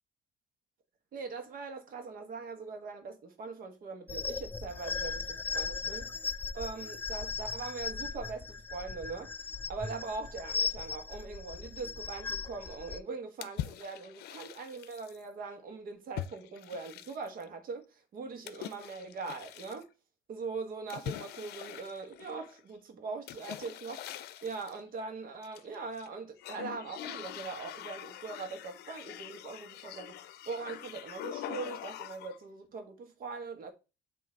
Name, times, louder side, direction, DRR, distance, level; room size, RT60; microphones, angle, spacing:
voice 1, 1.1-19.9 20.3-33.7, right 4 dB, 60° right, 1.5 m, -41 dB
sound 1, 4.1-13.0, left 5 dB, 10° left, 0.4 m, -37 dB
sound 2, 13.4-15.2 16.2-17.4 18.5-19.8 20.9-22.6 23.3-24.8 25.4-26.1 26.4-32.4, left 12 dB, 70° left, 0.6 m, -43 dB
7.4 x 3.0 x 4.5 m
cardioid pair, 110°, 17 cm